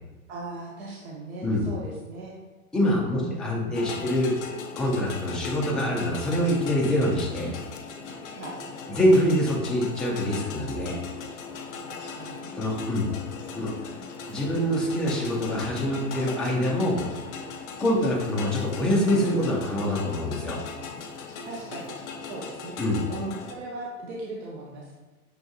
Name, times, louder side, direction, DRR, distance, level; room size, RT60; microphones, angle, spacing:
voice 1, 0.3-2.4 3.1-4.1 8.4-8.6 11.9-12.6 13.5-13.6 13.9-14.1 17.9-18.1 21.5-22.8 23.1-24.9, right 2 dB, 50° right, -3 dB, 0.9 m, -38 dB
voice 2, 2.7-4.4 4.7-7.6 8.9-11.0 12.6-13.0 13.5-13.7 14.3-17.0 17.8-20.6 22.8-23.0, equal, ahead, -4 dB, 0.4 m, -25 dB
sound 1, 3.7-23.5, left 5 dB, 50° left, 0.6 m, -38 dB
6.2 x 2.5 x 2.3 m, 1.2 s
hypercardioid pair, 110°, 43 cm